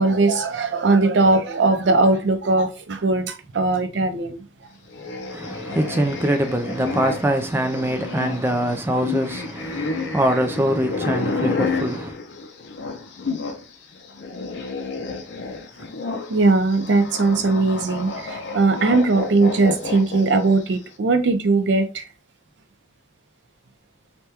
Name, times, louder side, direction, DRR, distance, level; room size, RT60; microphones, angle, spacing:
voice 1, 0.0-4.5 16.3-22.0, right 3 dB, 75° right, 0.5 m, -19 dB
sound 1, 4.9-13.6 13.9-20.7, left 4 dB, 70° left, 0.5 m, -30 dB
voice 2, 5.3-12.2, right 1 dB, 15° right, 0.3 m, -23 dB
3.4 x 2.2 x 2.8 m
head